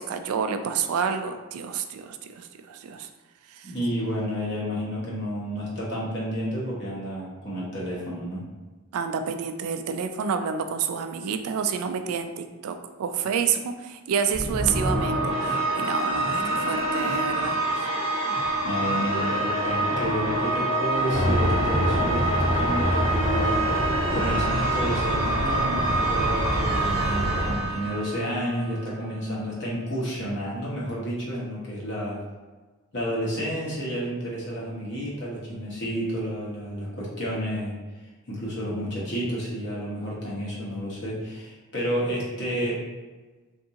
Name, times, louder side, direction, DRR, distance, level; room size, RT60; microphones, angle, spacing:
voice 1, 0.0-3.1 3.5-3.7 8.9-17.6, right 6 dB, 85° right, 8 dB, 0.3 m, -29 dB
voice 2, 3.6-8.4 18.6-23.8 24.1-32.2 32.9-37.7 38.3-42.8, equal, 55° left, -6 dB, 1.0 m, -30 dB
sound 1, 14.3-28.7, right 2 dB, 25° left, 0.9 m, -26 dB
sound 2, 21.1-27.6, equal, 65° right, 0.8 m, -27 dB
3.6 x 2.6 x 2.8 m, 1.3 s
head